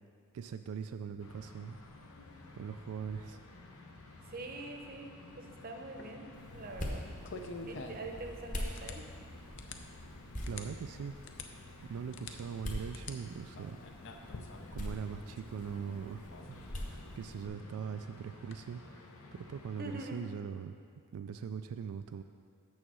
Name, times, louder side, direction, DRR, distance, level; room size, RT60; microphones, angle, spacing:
voice 1, 0.3-1.8 2.5-3.4 10.5-11.2 11.8-13.8 14.7-20.8 21.1-22.2, right 6 dB, 85° right, 8 dB, 0.3 m, -41 dB
sound 1, 1.2-20.1, left 2 dB, 85° left, 0.9 m, -54 dB
voice 2, 4.3-7.1 7.7-9.1 19.8-20.2, right 2 dB, 40° right, 3 dB, 0.8 m, -44 dB
sound 2, 5.8-18.6, left 3 dB, 55° left, 0.6 m, -50 dB
sound 3, 6.3-17.5, left 1 dB, 35° left, 1.0 m, -44 dB
7.1 x 6.4 x 6.2 m, 2.3 s
head